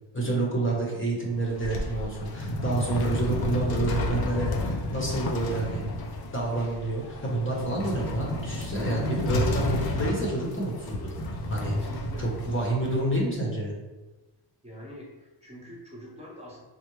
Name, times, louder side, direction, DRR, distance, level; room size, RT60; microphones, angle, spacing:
voice 1, 0.1-5.8 6.3-11.1 11.5-11.8 12.2-13.7, right 2 dB, 25° left, -3 dB, 1.0 m, -29 dB
sound 1, 1.3-13.2, left 1 dB, 50° left, 0.6 m, -31 dB
voice 2, 11.7-12.3 14.6-16.6, equal, 15° right, -4 dB, 0.9 m, -45 dB
3.4 x 2.0 x 3.1 m, 1.1 s
supercardioid pair, 45°, 49 cm